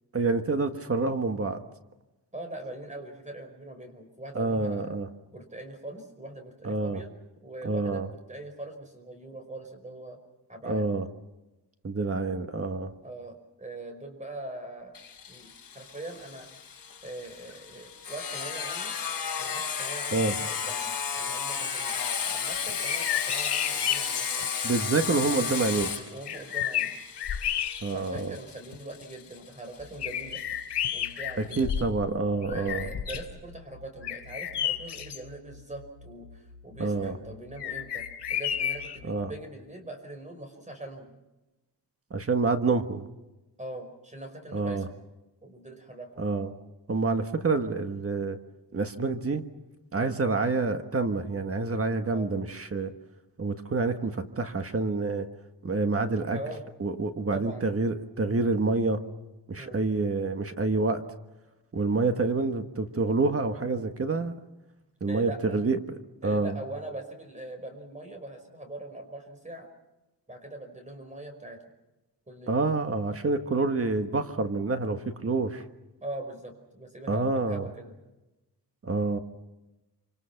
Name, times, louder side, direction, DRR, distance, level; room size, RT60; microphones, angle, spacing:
voice 1, 0.1-1.6 4.3-5.1 6.6-7.0 7.6-8.1 10.6-11.0 11.8-12.9 20.1-20.3 24.6-25.9 27.8-28.3 31.6-32.9 36.8-37.2 39.0-39.3 42.1-43.1 44.5-44.9 46.2-46.5 46.9-48.4 48.7-49.4 49.9-52.9 53.4-55.3 55.6-56.4 56.8-59.0 59.5-61.0 61.7-64.3 65.0-66.5 72.5-75.6 77.1-77.7 78.8-79.2, right 3 dB, 35° right, 7 dB, 1.5 m, -27 dB
voice 2, 2.3-5.0 5.3-7.1 7.4-10.2 10.5-10.8 13.0-14.9 15.3-16.5 17.0-18.9 19.4-24.5 26.1-26.9 27.9-30.4 30.9-31.7 32.3-41.1 43.6-44.9 45.4-46.2 52.1-52.3 56.3-56.6 57.3-57.7 59.6-59.8 61.9-62.2 65.1-65.6 66.2-69.7 70.3-71.6 72.3-72.6 76.0-78.0, right 2 dB, 20° right, 5 dB, 5.2 m, -42 dB
Sawing, 14.9-30.4, left 6 dB, 55° left, 5.8 m, -34 dB
sound 1, 22.7-24.4 25.8-25.9 26.3-28.2 28.7-28.8 30.0-32.1 32.4-33.3 34.0-35.2 37.6-39.0, left 10 dB, 80° left, 4.0 m, -31 dB
sound 2, 29.8-39.0, left 2 dB, 5° left, 4.4 m, -52 dB
27.5 x 26.5 x 5.9 m, 1.0 s
wide cardioid pair, 150°, 40 cm